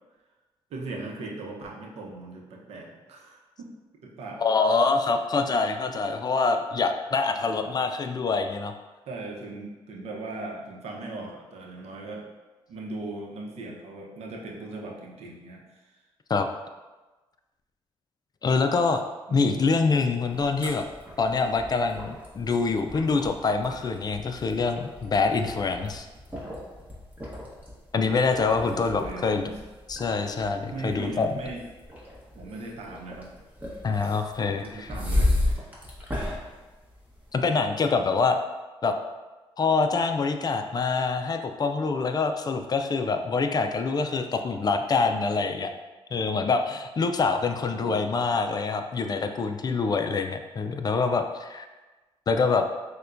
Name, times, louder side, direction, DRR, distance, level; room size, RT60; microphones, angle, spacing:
voice 1, 0.7-3.7 4.0-4.4 7.4-7.7 9.1-12.3 12.7-15.6 19.3-19.8 28.5-29.6 30.7-31.6 32.4-33.3 34.6-35.7 47.7-48.3, right 2 dB, 80° right, -1 dB, 0.8 m, -39 dB
voice 2, 4.4-8.7 16.3-16.5 18.4-19.0 19.3-20.8 21.2-26.1 27.9-29.4 29.9-31.3 33.8-34.9 37.3-38.4 38.8-38.9 39.6-45.7 46.1-51.7 52.3-52.7, left 4 dB, 40° left, 6 dB, 0.4 m, -25 dB
sound 1, 20.3-37.5, left 1 dB, 15° right, 1.1 m, -34 dB
6.5 x 2.2 x 2.5 m, 1.2 s
cardioid pair, 75°, 11 cm